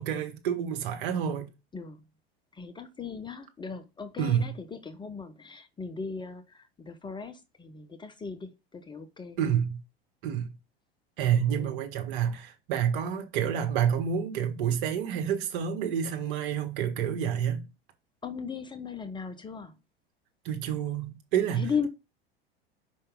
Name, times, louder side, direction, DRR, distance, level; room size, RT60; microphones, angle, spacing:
voice 1, 0.0-1.5 4.2-4.5 9.4-9.8 10.2-10.5 11.2-17.6 20.4-21.7, right 8 dB, 55° right, 1.7 m, -28 dB
voice 2, 2.5-9.4 11.3-11.8 18.2-19.7 21.6-21.9, left 6 dB, 15° left, 0.7 m, -37 dB
5.4 x 5.4 x 3.8 m
figure-of-eight pair, 80°, 31 cm